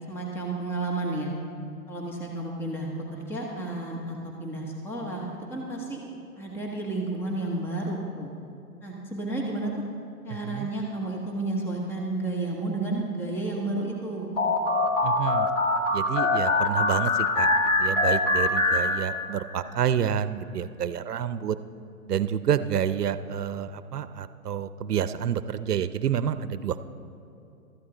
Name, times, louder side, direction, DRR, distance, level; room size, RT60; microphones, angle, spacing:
voice 1, 0.1-1.3 1.9-6.0 6.4-8.3 8.8-9.7 10.2-14.3, right 2 dB, 5° left, -1 dB, 0.9 m, -31 dB
sound 1, 14.4-19.5, left 2 dB, 35° left, 1.5 m, -24 dB
voice 2, 15.0-15.5 15.9-17.5 17.8-21.6 22.1-26.8, right 9 dB, 85° right, 13 dB, 0.7 m, -28 dB
15.0 x 13.5 x 3.9 m, 2.9 s
hypercardioid pair, 145°, 46 cm